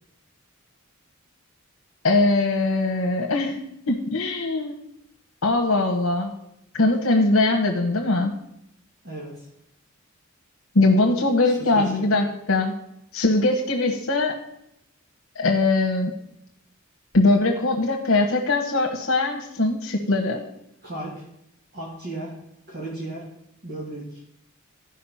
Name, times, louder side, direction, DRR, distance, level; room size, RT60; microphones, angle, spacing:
voice 1, 2.0-3.6 3.9-4.7 5.4-6.3 6.7-8.3 10.7-12.7 13.1-14.3 15.3-16.1 17.1-20.4, left 2 dB, 75° left, 1 dB, 1.2 m, -21 dB
voice 2, 9.0-9.5 11.4-12.1 20.8-21.2 21.7-22.3 22.7-23.2 23.6-24.2, right 2 dB, 50° right, -5 dB, 2.4 m, -35 dB
12.5 x 5.3 x 5.7 m, 0.80 s
head